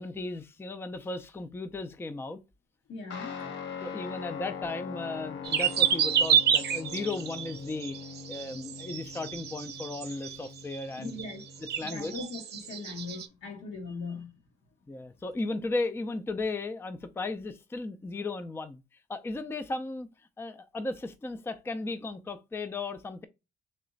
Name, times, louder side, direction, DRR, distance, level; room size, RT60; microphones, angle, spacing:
voice 1, 0.0-2.4 3.4-3.5 3.8-8.0 8.3-11.2 11.8-12.1 14.9-18.8 19.1-20.1 20.4-23.3, left 3 dB, 10° left, 0.4 m, -35 dB
voice 2, 2.9-3.4 10.9-11.4 11.8-14.3, left 3 dB, 85° left, 1.3 m, -39 dB
Guitar, 3.1-11.9, left 6 dB, 65° left, 0.8 m, -42 dB
sound 1, 5.4-10.5 10.7-10.8 11.2-11.4 11.7-13.2, right 8 dB, 55° right, 0.6 m, -28 dB
3.2 x 3.0 x 3.9 m
cardioid pair, 90°, 20 cm